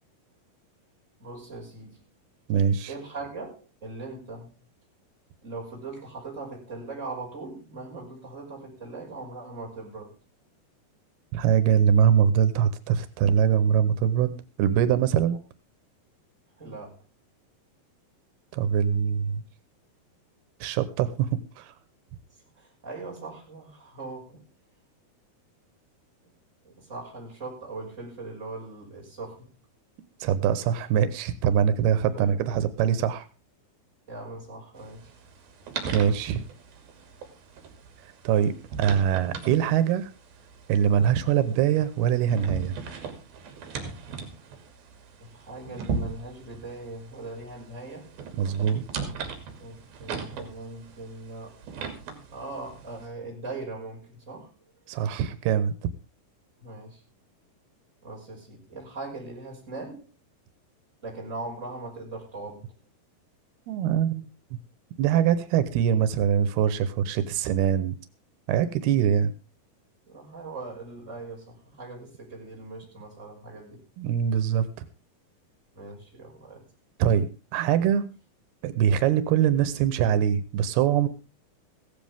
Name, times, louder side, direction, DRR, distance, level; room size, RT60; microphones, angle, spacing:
voice 1, 1.2-2.0 2.9-4.5 5.4-10.2 16.6-17.0 22.6-24.4 26.6-29.5 32.1-32.3 34.1-35.1 45.2-48.1 49.6-51.6 52.3-54.5 56.6-57.0 58.0-60.1 61.0-62.7 70.1-73.8 75.7-76.6, right 3 dB, 20° right, -2 dB, 6.1 m, -40 dB
voice 2, 2.5-2.9 11.3-15.4 18.5-19.4 20.6-21.7 30.2-33.3 35.9-36.4 38.2-40.1 40.7-42.8 48.4-48.8 54.9-55.7 63.7-64.3 65.0-68.0 68.5-69.3 74.0-74.9 77.0-78.1 78.6-81.1, right 8 dB, 90° right, 13 dB, 3.1 m, -23 dB
sound 1, 34.8-53.1, right 5 dB, 70° right, 4.4 m, -39 dB
16.0 x 15.0 x 3.6 m, 0.30 s
omnidirectional pair, 4.4 m